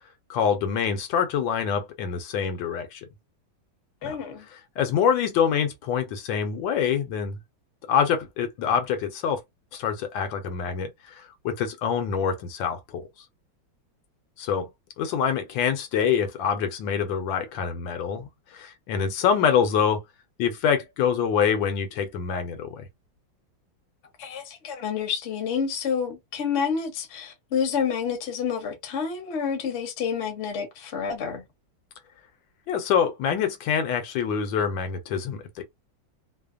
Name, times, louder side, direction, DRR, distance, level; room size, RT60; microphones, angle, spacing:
voice 1, 0.3-3.0 4.0-4.2 4.8-7.4 7.9-9.4 9.7-13.1 14.4-14.7 15.0-20.0 20.4-22.9 32.7-35.6, left 7 dB, 80° left, 1.3 m, -25 dB
voice 2, 4.0-4.5 24.2-31.4, left 6 dB, 55° left, 0.8 m, -29 dB
3.2 x 2.0 x 2.3 m
omnidirectional pair, 2.1 m